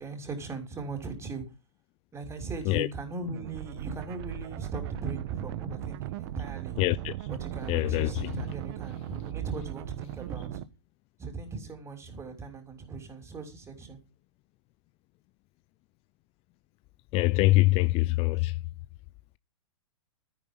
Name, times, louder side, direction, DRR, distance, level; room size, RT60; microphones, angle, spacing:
voice 1, 0.0-1.4 2.1-6.8 7.3-10.6 11.2-14.0, right 4 dB, 15° right, 6.3 m, -38 dB
sound 1, 3.3-10.6, right 14 dB, 55° right, 1.3 m, -38 dB
voice 2, 6.8-7.3 7.7-8.3 17.1-18.6, left 20 dB, 35° left, 0.7 m, -24 dB
14.0 x 10.5 x 5.6 m
hypercardioid pair, 115°, 16 cm